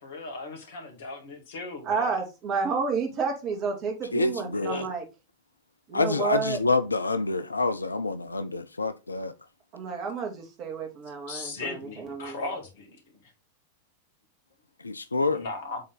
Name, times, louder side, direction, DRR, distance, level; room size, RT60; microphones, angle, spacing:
voice 1, 0.0-2.2 4.5-4.9 11.3-13.0 15.3-15.8, left 3 dB, 55° left, 2.4 m, -37 dB
voice 2, 1.8-5.0 5.9-6.6 9.7-12.5, right 5 dB, 35° right, 2.4 m, -30 dB
voice 3, 4.1-4.9 5.9-9.3 14.8-15.4, left 3 dB, 80° left, 0.5 m, -27 dB
7.7 x 3.9 x 4.1 m
figure-of-eight pair, 90°, 0 cm